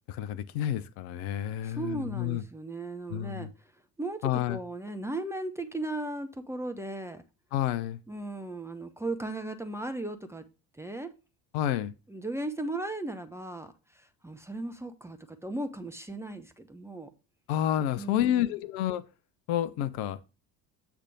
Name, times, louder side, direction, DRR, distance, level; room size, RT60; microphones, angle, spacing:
voice 1, 0.1-2.4 3.1-3.5 4.2-4.6 7.5-8.0 11.5-11.9 17.5-19.0 19.5-20.2, left 11 dB, 50° left, 0.7 m, -29 dB
voice 2, 1.6-3.5 4.0-7.2 8.1-10.4 10.8-11.1 12.1-13.7 14.2-17.1 18.0-18.5, right 2 dB, 5° right, 0.7 m, -36 dB
8.3 x 3.4 x 6.0 m
figure-of-eight pair, 60°, 50 cm